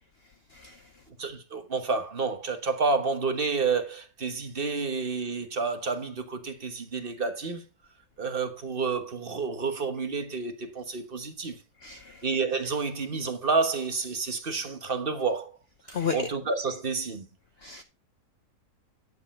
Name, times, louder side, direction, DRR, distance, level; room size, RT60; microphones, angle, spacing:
voice 1, 1.1-7.6 8.2-11.6 12.2-15.6 15.9-17.3, right 4 dB, 35° right, 1.3 m, -29 dB
voice 2, 11.8-12.1 15.9-16.2 17.6-17.8, left 6 dB, 50° left, 0.9 m, -32 dB
10.5 x 7.3 x 4.3 m
omnidirectional pair, 1.8 m